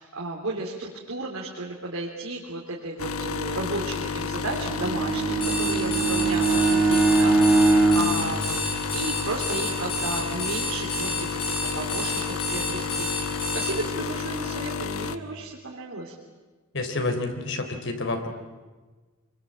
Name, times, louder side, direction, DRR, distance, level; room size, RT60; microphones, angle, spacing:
voice 1, 0.0-16.1, right 2 dB, 80° right, -2 dB, 3.4 m, -34 dB
sound 1, 3.0-15.2, left 5 dB, 85° left, 1.1 m, -31 dB
Bowed string instrument, 4.6-9.2, right 3 dB, 10° right, 4.5 m, -22 dB
Alarm, 5.3-13.7, left 2 dB, 25° left, 7.0 m, -30 dB
voice 2, 16.7-18.3, left 2 dB, 60° left, 5 dB, 3.6 m, -28 dB
26.5 x 23.5 x 8.8 m, 1.3 s
head